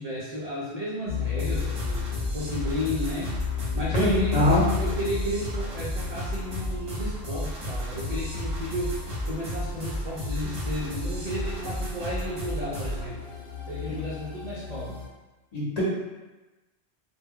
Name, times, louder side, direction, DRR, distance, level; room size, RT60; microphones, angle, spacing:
voice 1, 0.0-2.1 2.3-3.4 3.7-9.0 9.2-13.2 13.7-15.0, equal, 70° right, -5 dB, 0.3 m, -33 dB
sound 1, 1.1-15.1, left 9 dB, 65° left, 0.9 m, -35 dB
sound 2, 1.4-13.1, equal, 30° right, 0.7 m, -33 dB
voice 2, 3.9-4.7 13.9-14.0 15.5-15.8, equal, 40° left, -8 dB, 0.8 m, -22 dB
2.2 x 2.1 x 3.5 m, 1.1 s
omnidirectional pair, 1.2 m